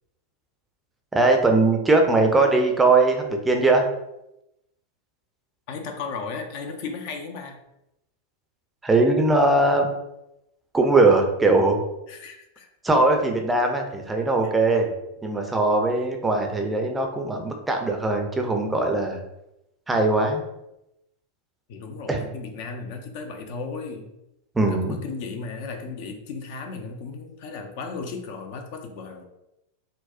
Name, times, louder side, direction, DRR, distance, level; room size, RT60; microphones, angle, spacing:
voice 1, 1.1-3.9 8.8-9.9 10.7-11.8 12.8-14.9 15.2-19.2 19.9-20.4 22.1-22.2 24.6-25.0, right 2 dB, 10° right, 3 dB, 0.4 m, -20 dB
voice 2, 5.7-7.6 12.1-12.7 14.4-14.5 21.7-24.1 24.6-29.2, left 4 dB, 45° left, 4 dB, 0.4 m, -35 dB
4.0 x 2.0 x 2.4 m, 0.88 s
figure-of-eight pair, 90°, 0 cm